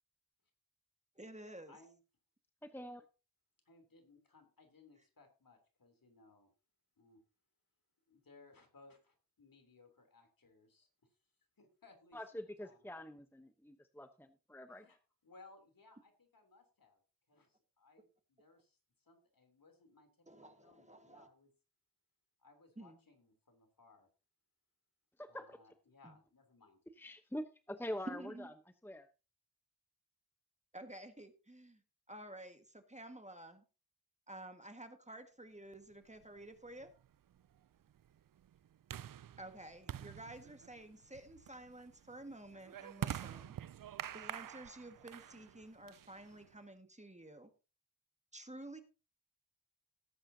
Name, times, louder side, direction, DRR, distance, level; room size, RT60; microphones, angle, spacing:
voice 1, 1.1-1.8 20.3-21.3 22.8-23.0 26.0-26.1 28.1-28.5 30.7-31.8 32.1-33.6 34.3-36.9 39.4-43.5 43.9-47.5 48.3-48.8, right 1 dB, 20° right, 7 dB, 1.7 m, -51 dB
voice 2, 1.7-2.0 3.6-6.5 7.0-7.2 8.1-10.9 11.6-12.8 14.8-17.0 17.3-20.1 20.4-21.5 22.4-24.1 25.3-26.8, left 3 dB, 60° left, 5 dB, 3.3 m, -64 dB
voice 3, 2.6-3.0 12.1-15.0 25.2-25.6 27.0-28.5 28.8-29.1, equal, 5° left, 9 dB, 0.9 m, -45 dB
sound 1, 36.2-46.6, right 10 dB, 60° right, 0.5 m, -47 dB
18.0 x 8.7 x 2.8 m, 0.32 s
cardioid pair, 55°, 38 cm